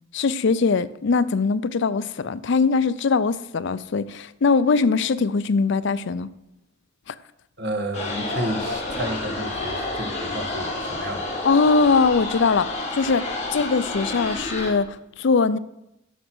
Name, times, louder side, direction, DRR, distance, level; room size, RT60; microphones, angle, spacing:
voice 1, 0.1-6.3 7.1-7.2 11.4-13.2 13.5-15.6, left 4 dB, 60° left, 16 dB, 0.5 m, -21 dB
voice 2, 7.6-11.3, right 1 dB, 60° right, 5 dB, 1.4 m, -31 dB
sound 1, 7.9-14.7, left 2 dB, 35° left, 2.6 m, -30 dB
10.0 x 6.3 x 6.1 m, 0.86 s
head